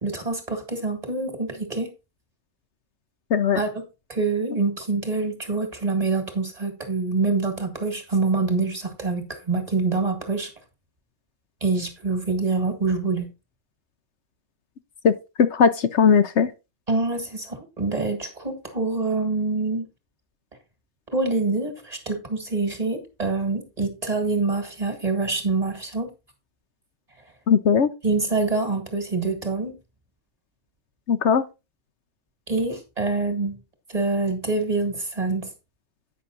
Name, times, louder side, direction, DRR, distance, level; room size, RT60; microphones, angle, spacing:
voice 1, 0.0-1.9 3.6-3.8 4.1-10.5 11.6-13.2 16.9-19.8 21.1-26.1 28.0-29.7 32.5-33.6 33.9-35.5, right 3 dB, 30° right, 2.1 m, -25 dB
voice 2, 15.4-16.5 27.5-27.9 31.1-31.4, left 6 dB, 65° left, 1.0 m, -18 dB
9.5 x 5.9 x 3.9 m
omnidirectional pair, 1.3 m